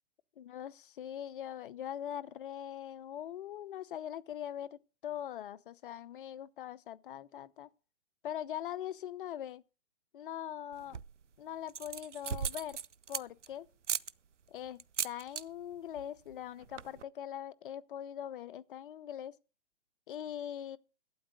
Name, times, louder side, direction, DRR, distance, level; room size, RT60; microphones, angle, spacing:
voice 1, 0.4-7.7 8.2-9.6 10.1-11.0 11.4-12.8 13.1-13.7 14.5-19.4 20.1-20.8, left 10 dB, 50° left, 0.8 m, -42 dB
sound 1, 10.7-11.2 11.7-13.5 13.8-14.1 14.8-15.4 15.7-16.0 16.3-16.4 16.6-17.0, right 7 dB, 90° right, 0.7 m, -37 dB
12.5 x 8.7 x 6.5 m
hypercardioid pair, 135°, 35 cm